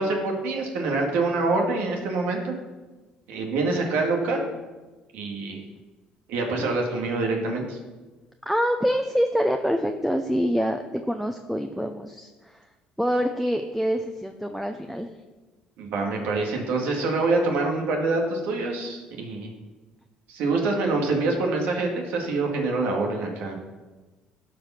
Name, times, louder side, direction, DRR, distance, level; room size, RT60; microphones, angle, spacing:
voice 1, 0.0-2.5 3.3-4.4 5.1-5.6 6.3-7.8 15.8-19.5 20.3-23.6, right 3 dB, 75° right, 1 dB, 2.0 m, -25 dB
voice 2, 8.5-12.7 13.0-15.1, equal, ahead, 5 dB, 0.6 m, -26 dB
12.0 x 4.9 x 5.8 m, 1.2 s
supercardioid pair, 80°, 3 cm